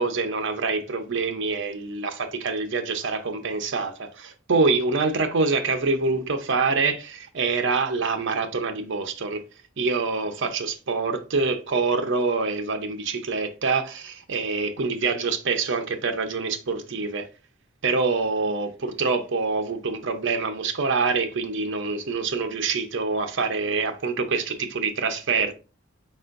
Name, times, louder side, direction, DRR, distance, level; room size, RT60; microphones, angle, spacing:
voice 1, 0.0-9.4 9.8-17.3 17.8-25.5, right 4 dB, 65° right, 0.7 m, -25 dB
4.3 x 4.2 x 2.5 m
head